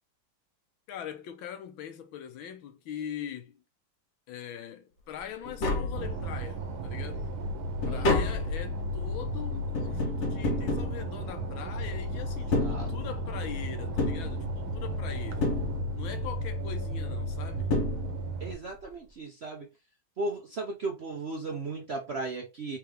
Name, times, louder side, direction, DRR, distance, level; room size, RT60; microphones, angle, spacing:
voice 1, 0.9-3.6 4.3-7.3 7.9-15.5 15.9-17.8, left 9 dB, 90° left, 1.7 m, -41 dB
Tap, 5.2-5.3 5.5-6.6 7.0-11.8 12.4-13.4 14.0-14.9 15.4-16.2 17.3-17.4 17.7-18.5 18.8-18.9, left 3 dB, 55° left, 0.8 m, -31 dB
sound 1, 5.9-18.5, right 1 dB, 80° right, 1.6 m, -34 dB
voice 2, 7.8-8.3 12.6-12.9 18.4-19.7 20.2-22.8, right 3 dB, 60° right, 0.6 m, -36 dB
4.5 x 3.5 x 3.3 m
omnidirectional pair, 2.1 m